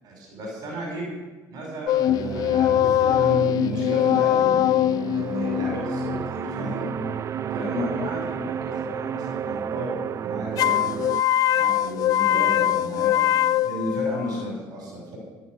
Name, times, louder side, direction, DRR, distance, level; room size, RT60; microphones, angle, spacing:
voice 1, 0.0-1.1 1.5-4.4 5.1-6.9 7.5-9.9 10.2-11.0 11.5-15.2, equal, 55° right, -2 dB, 6.5 m, -33 dB
sound 1, 1.9-7.2 10.6-14.5, left 12 dB, 55° left, 0.4 m, -22 dB
sound 2, 2.1-11.2, right 8 dB, 40° right, 0.5 m, -31 dB
15.0 x 9.6 x 8.2 m, 1.2 s
cardioid pair, 105°, 8 cm